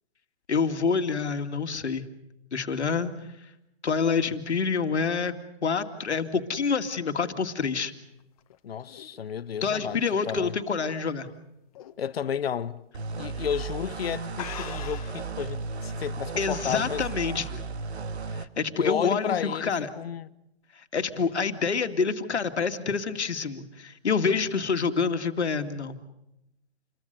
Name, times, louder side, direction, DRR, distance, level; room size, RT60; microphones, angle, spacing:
voice 1, 0.5-2.1 2.5-3.1 3.8-5.3 5.6-7.9 9.6-11.3 16.4-17.6 18.3-19.9 20.9-26.0, left 5 dB, 85° left, 2.3 m, -27 dB
sound 1, 8.2-11.3 11.7-12.1 12.4-12.5 13.4-13.6 13.9-14.0 14.3-15.3, left 11 dB, 35° left, 1.6 m, -42 dB
voice 2, 8.6-10.0 10.3-10.6 12.0-12.8 13.2-17.0 18.8-20.3, left 8 dB, 65° left, 1.2 m, -32 dB
sound 2, 12.9-18.5, right 4 dB, 75° right, 1.9 m, -35 dB
29.0 x 22.5 x 6.8 m
hypercardioid pair, 160°, 33 cm